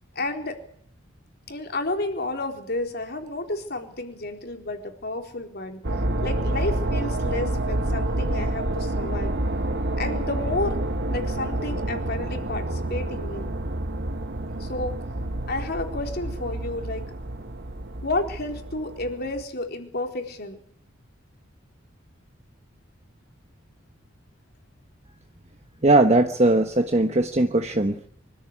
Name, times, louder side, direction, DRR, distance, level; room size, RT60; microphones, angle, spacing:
voice 1, 0.2-0.6 1.5-5.8 6.2-9.3 10.0-10.8 11.1-13.5 14.6-15.0 15.5-17.0 18.0-20.6, left 2 dB, 55° left, 4 dB, 4.1 m, -31 dB
sound 1, 5.8-19.4, right 1 dB, 55° right, 1.4 m, -28 dB
voice 2, 25.8-28.1, right 2 dB, 35° right, 6 dB, 1.2 m, -19 dB
25.0 x 13.5 x 9.9 m, 0.64 s
head